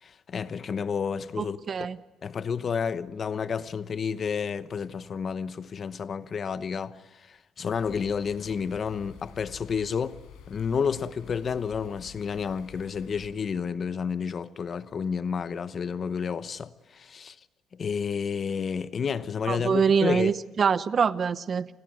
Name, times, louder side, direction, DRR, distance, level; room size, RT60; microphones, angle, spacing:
voice 1, 0.0-1.9 2.2-10.2 10.5-17.4 17.7-20.4, left 6 dB, 35° left, 0.9 m, -31 dB
voice 2, 1.4-2.0 19.5-21.7, right 6 dB, 35° right, 0.9 m, -24 dB
sound 1, 7.7-13.3, left 7 dB, 85° left, 5.7 m, -49 dB
29.0 x 20.5 x 9.4 m
cardioid pair, 150°, 0 cm